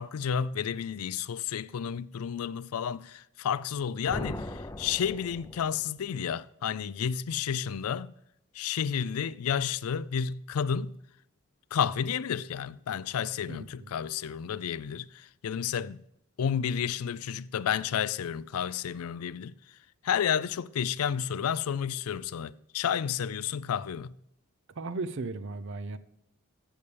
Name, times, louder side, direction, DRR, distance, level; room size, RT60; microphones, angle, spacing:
voice 1, 0.0-8.1 8.5-11.0 11.7-16.0 16.4-19.5 20.0-24.1, left 8 dB, 90° left, 0.4 m, -31 dB
sound 1, 4.1-6.0, left 1 dB, 15° left, 0.5 m, -39 dB
voice 2, 13.5-13.9 24.8-26.0, right 3 dB, 60° right, 0.6 m, -36 dB
15.5 x 6.9 x 3.3 m
head